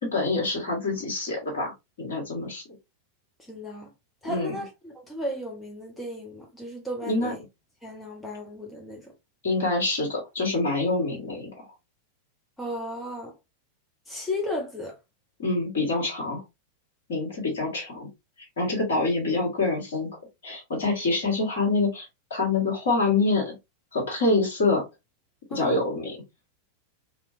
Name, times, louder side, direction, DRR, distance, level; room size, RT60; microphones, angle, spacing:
voice 1, 0.0-1.7 2.0-2.6 4.2-4.6 7.0-7.3 9.4-11.7 15.4-16.4 17.1-18.1 18.6-20.1 20.4-23.5 23.9-24.8 25.5-26.2, left 3 dB, 60° left, 1.7 m, -26 dB
voice 2, 3.5-3.9 4.2-7.4 7.8-9.1 12.6-13.3 14.1-15.0 25.5-25.8, left 1 dB, 10° left, 0.9 m, -34 dB
3.0 x 2.9 x 2.6 m
figure-of-eight pair, 90°, 0 cm